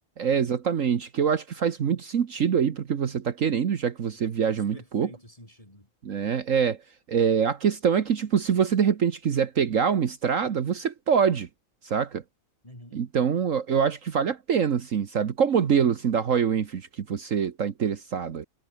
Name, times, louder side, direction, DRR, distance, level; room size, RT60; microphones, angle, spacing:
voice 1, 0.2-5.1 6.0-6.8 7.1-11.5 11.8-12.2 12.9-18.5, right 7 dB, 60° right, 1.5 m, -25 dB
voice 2, 4.1-5.9 12.6-13.0, left 1 dB, 20° left, 6.1 m, -49 dB
omnidirectional pair, 1.6 m